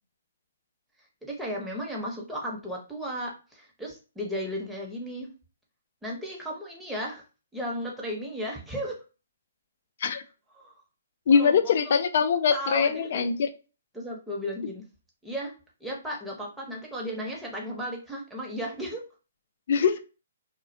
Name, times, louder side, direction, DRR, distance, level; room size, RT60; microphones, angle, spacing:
voice 1, 1.2-5.3 6.0-7.2 7.5-9.0 10.6-10.7 11.3-11.9 12.5-13.2 13.9-14.8 15.2-15.5 15.8-19.0 19.8-19.9, equal, 5° right, -3 dB, 0.8 m, -35 dB
voice 2, 11.3-13.5 19.7-20.0, left 6 dB, 55° left, 10 dB, 0.3 m, -22 dB
2.3 x 2.1 x 2.6 m, 0.33 s
hypercardioid pair, 135°, 0 cm